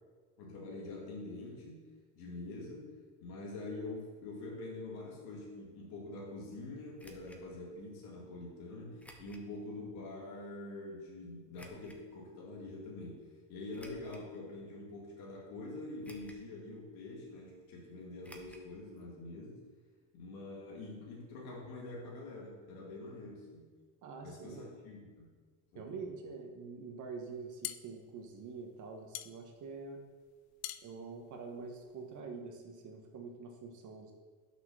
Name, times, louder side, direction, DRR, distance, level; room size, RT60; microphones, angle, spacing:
voice 1, 0.4-1.9 2.2-2.9 3.2-19.6 20.1-23.7 24.2-25.3 25.7-26.0, left 2 dB, 60° left, -3 dB, 2.1 m, -45 dB
sound 1, 7.0-7.4 9.0-9.5 10.0-10.1 11.6-12.0 13.7-14.3 14.9-15.0 16.0-16.5 16.8-16.9 18.2-18.7 19.0-19.1 19.3-19.4, equal, 5° left, 0.9 m, -56 dB
voice 2, 24.0-24.7 25.7-30.0 30.8-34.1, right 4 dB, 45° right, 3 dB, 1.1 m, -46 dB
sound 2, 27.3-32.2, left 15 dB, 80° left, 0.6 m, -46 dB
5.9 x 5.9 x 6.1 m, 1.5 s
supercardioid pair, 110°, 41 cm